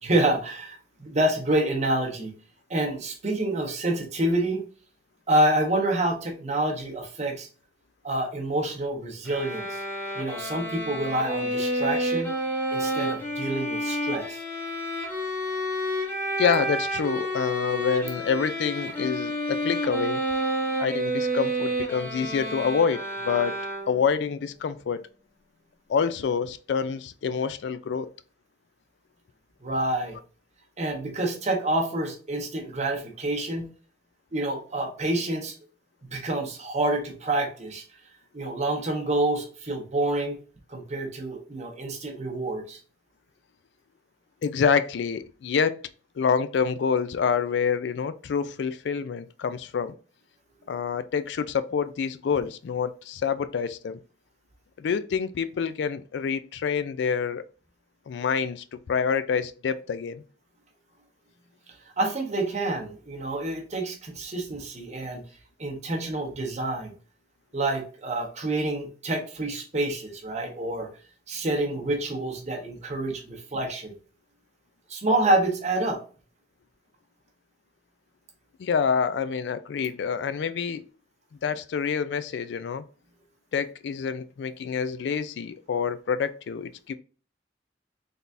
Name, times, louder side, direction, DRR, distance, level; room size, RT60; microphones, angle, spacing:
voice 1, 0.0-2.3 2.7-4.6 5.3-7.5 8.0-9.8 10.1-12.3 12.7-14.4 29.6-30.2 30.8-33.7 34.3-35.5 36.1-37.8 38.3-40.4 40.7-42.8 62.0-65.2 65.6-66.9 67.5-70.9 71.3-73.9 74.9-76.0, right 1 dB, 40° right, 1.0 m, -27 dB
sound 1, 9.2-24.2, equal, 10° left, 1.3 m, -30 dB
voice 2, 16.4-20.2 20.8-23.6 23.9-25.0 25.9-28.1 44.4-45.8 46.2-50.0 50.7-54.0 54.8-57.4 58.1-60.2 78.6-80.8 81.4-82.8 83.5-86.9, left 6 dB, 70° left, 0.3 m, -27 dB
4.0 x 3.4 x 2.6 m
head